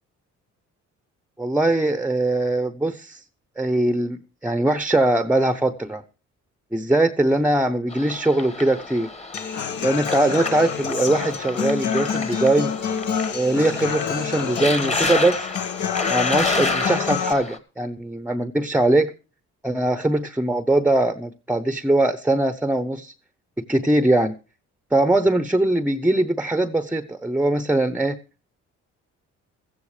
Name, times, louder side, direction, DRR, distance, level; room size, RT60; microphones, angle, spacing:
voice 1, 1.4-3.2 3.6-6.0 6.7-9.1 9.8-12.7 13.3-15.5 16.1-19.1 19.6-23.1 23.6-24.3 24.9-28.2, right 1 dB, 5° right, 0.8 m, -21 dB
sound 1, 7.9-17.6, left 2 dB, 20° left, 1.6 m, -30 dB
Human voice / Acoustic guitar, 9.3-17.3, left 7 dB, 75° left, 1.5 m, -27 dB
16.5 x 14.5 x 3.2 m
cardioid pair, 90°, 30 cm